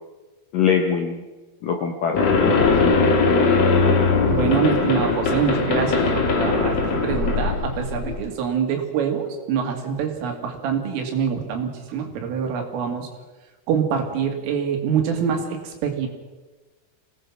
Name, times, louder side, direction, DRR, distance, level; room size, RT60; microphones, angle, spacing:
voice 1, 0.5-1.2 1.6-3.3, left 7 dB, 70° left, 4 dB, 2.0 m, -24 dB
sound 1, 2.2-8.2, left 4 dB, 45° left, 2.3 m, -20 dB
voice 2, 4.3-13.1 13.7-16.1, right 7 dB, 85° right, 4 dB, 5.1 m, -25 dB
25.5 x 18.0 x 6.2 m, 1.2 s
omnidirectional pair, 5.6 m